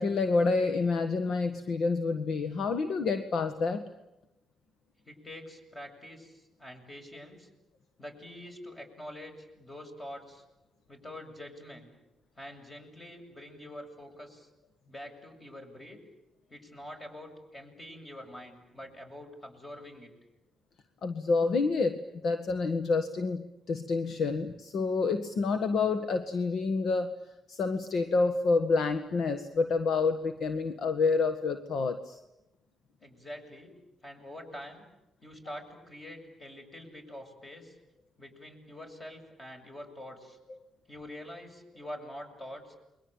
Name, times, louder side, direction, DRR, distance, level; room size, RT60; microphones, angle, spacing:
voice 1, 0.0-3.9 21.0-27.2 27.5-32.2, left 4 dB, 60° left, 9 dB, 1.6 m, -28 dB
voice 2, 5.0-7.5 8.0-10.4 10.9-11.9 12.4-14.5 14.9-16.0 16.5-20.1 33.0-33.7 34.0-34.8 35.2-37.8 38.2-40.4 40.9-42.8, left 1 dB, 25° left, 4 dB, 7.5 m, -45 dB
29.0 x 23.0 x 9.0 m, 0.94 s
cardioid pair, 90°, 0 cm